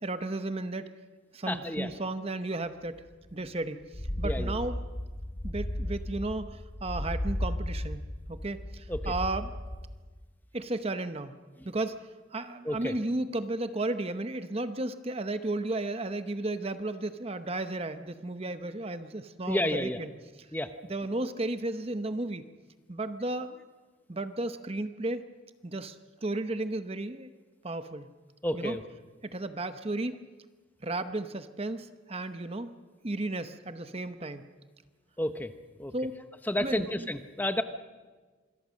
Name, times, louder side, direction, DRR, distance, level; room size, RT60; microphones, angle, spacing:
voice 1, 0.0-0.9 1.3-3.0 3.3-4.8 5.4-9.5 10.5-11.4 11.6-20.1 20.9-22.4 22.9-23.6 24.1-25.2 25.6-27.3 27.6-28.1 28.5-28.8 29.2-30.2 30.8-32.7 33.0-34.5 35.9-36.1 36.6-37.1, right 2 dB, 30° right, 10 dB, 0.8 m, -34 dB
voice 2, 1.5-1.9 4.2-4.5 8.9-9.1 12.7-12.9 19.5-20.0 20.5-20.7 28.4-28.8 35.2-35.5 35.8-35.9 36.5-37.6, left 1 dB, 10° left, 9 dB, 0.9 m, -30 dB
sound 1, 3.0-3.1 3.3-3.4 3.8-10.0, left 1 dB, 25° left, 1.2 m, -35 dB
26.5 x 22.0 x 6.4 m, 1.4 s
head